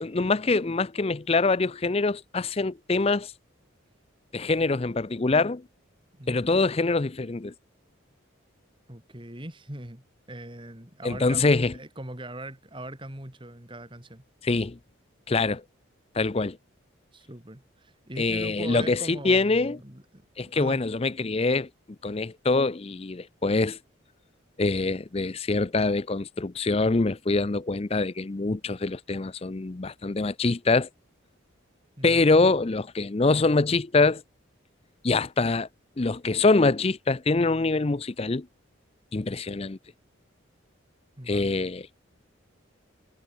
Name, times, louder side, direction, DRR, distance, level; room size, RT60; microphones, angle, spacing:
voice 1, 0.0-3.3 4.3-5.6 6.3-7.5 11.0-11.7 14.4-14.8 15.3-15.6 16.1-16.6 18.2-19.8 20.4-21.7 22.0-23.8 24.6-30.9 32.0-34.2 35.0-35.7 36.0-38.5 39.1-39.8 41.3-41.9, left 3 dB, 30° left, 0.5 m, -24 dB
voice 2, 6.1-6.5 8.9-14.2 17.1-20.8 32.0-32.3 41.2-41.5, right 1 dB, 25° right, 2.8 m, -41 dB
head